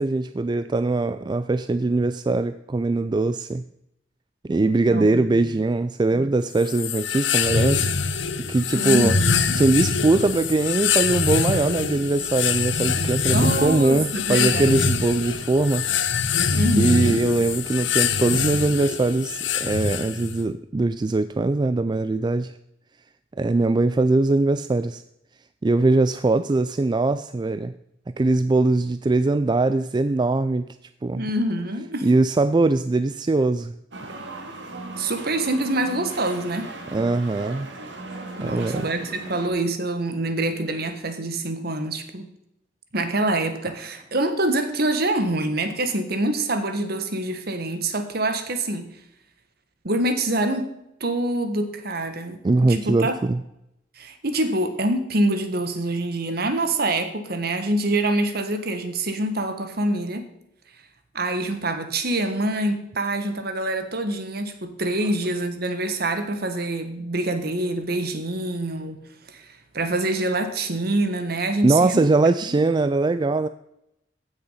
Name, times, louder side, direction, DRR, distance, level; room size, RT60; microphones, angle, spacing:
voice 1, 0.0-3.6 4.5-7.9 8.4-9.2 9.6-15.9 16.8-22.5 23.4-25.0 25.6-27.7 28.2-30.7 31.0-31.2 32.0-33.7 36.9-37.7 38.4-38.9 52.4-53.4 71.6-73.5, right 2 dB, 25° right, 12 dB, 0.3 m, -21 dB
voice 2, 4.9-5.5 6.1-6.3 8.7-9.6 13.3-14.9 16.5-17.2 31.2-32.1 35.0-36.8 38.4-42.3 42.9-48.9 49.8-50.7 51.0-53.1 54.0-60.3 61.1-69.0 69.3-72.1, right 1 dB, 55° right, 8 dB, 1.5 m, -25 dB
sound 1, 6.6-20.4, left 6 dB, 85° left, 0.9 m, -24 dB
sound 2, 33.9-39.5, right 2 dB, 70° right, 2.1 m, -37 dB
15.0 x 6.7 x 5.7 m, 0.82 s
head